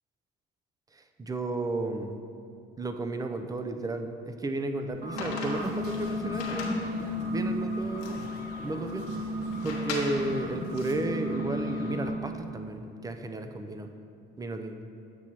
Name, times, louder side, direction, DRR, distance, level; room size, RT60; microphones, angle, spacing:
voice 1, 0.9-2.2 2.8-8.3 8.6-9.0 9.6-13.9 14.4-14.8, right 2 dB, 15° right, 7 dB, 0.5 m, -33 dB
sound 1, 4.9-12.1, left 1 dB, 45° right, 1.0 m, -33 dB
sound 2, 5.2-10.9, left 3 dB, 90° left, 1.1 m, -41 dB
7.7 x 6.0 x 2.9 m, 2.6 s
supercardioid pair, 90°, 21 cm